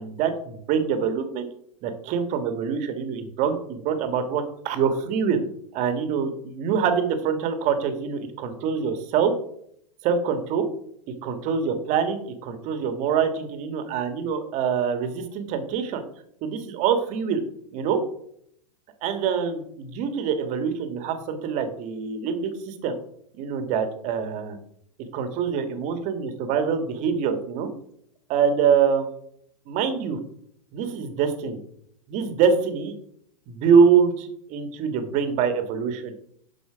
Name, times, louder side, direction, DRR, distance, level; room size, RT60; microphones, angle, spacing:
voice 1, 0.0-1.5 1.8-5.4 5.7-9.3 10.0-10.7 11.2-16.0 16.4-17.4 17.7-18.0 19.0-22.9 23.4-24.6 25.1-27.7 28.3-29.1 29.7-30.2 30.7-31.6 32.1-32.9 33.6-36.1, right 6 dB, 40° right, 8 dB, 1.8 m, -24 dB
11.5 x 5.0 x 5.1 m, 0.68 s
hypercardioid pair, 115°, 19 cm